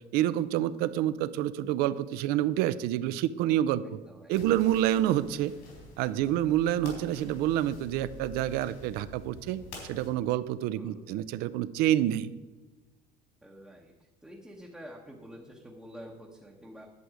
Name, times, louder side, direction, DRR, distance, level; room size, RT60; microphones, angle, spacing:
voice 1, 0.1-4.0 4.3-5.5 6.0-12.3, right 12 dB, 65° right, 15 dB, 0.5 m, -28 dB
voice 2, 4.1-4.5 6.0-6.4 10.8-11.1 13.4-16.9, equal, 5° right, -2 dB, 0.9 m, -49 dB
sound 1, 4.3-10.1, left 2 dB, 70° left, 3.7 m, -47 dB
11.0 x 7.8 x 4.9 m, 1.3 s
cardioid pair, 165°, 17 cm